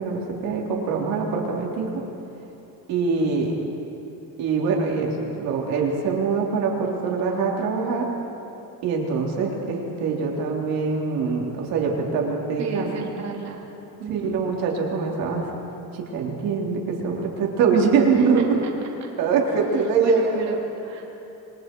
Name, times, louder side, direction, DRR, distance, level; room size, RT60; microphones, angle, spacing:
voice 1, 0.0-1.9 2.9-3.6 4.4-8.1 8.8-13.1 14.1-15.4 15.9-18.4 19.2-20.4, right 5 dB, 70° right, -1 dB, 3.8 m, -23 dB
voice 2, 12.6-13.7 14.0-14.3 18.1-18.3 18.6-18.7 19.5-19.6 20.0-21.0, right 5 dB, 45° right, -1 dB, 3.2 m, -32 dB
28.5 x 23.0 x 4.7 m, 3.0 s
cardioid pair, 180°, 36 cm